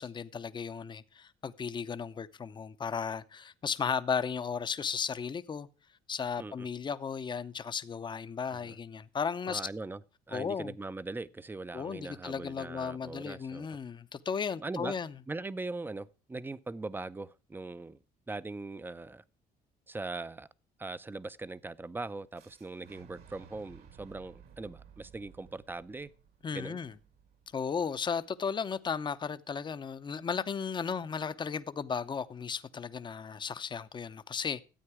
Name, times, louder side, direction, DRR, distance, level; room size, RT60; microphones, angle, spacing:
voice 1, 0.0-5.7 6.1-9.6 10.3-10.7 11.7-15.1 26.4-26.9 27.5-34.7, left 6 dB, 25° left, 0.7 m, -35 dB
voice 2, 9.5-10.0 10.3-13.7 14.6-14.9 15.3-18.0 18.3-19.2 19.9-20.5 20.8-26.1 26.5-26.8, right 3 dB, 10° right, 0.5 m, -40 dB
Fire / Explosion, 22.3-28.2, right 7 dB, 65° right, 1.8 m, -57 dB
13.0 x 8.6 x 4.8 m
cardioid pair, 110°, 17 cm